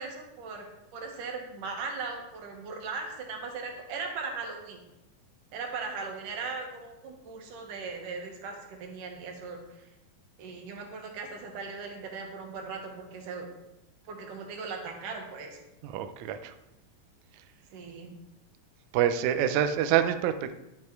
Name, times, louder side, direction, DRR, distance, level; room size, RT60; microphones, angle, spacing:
voice 1, 0.0-4.8 5.5-9.9 10.4-13.5 14.1-15.6 17.7-18.1, right 4 dB, 65° right, 3 dB, 3.0 m, -38 dB
voice 2, 15.8-16.5 18.9-20.5, right 10 dB, 85° right, 9 dB, 1.6 m, -26 dB
10.5 x 8.6 x 4.7 m, 0.91 s
omnidirectional pair, 4.2 m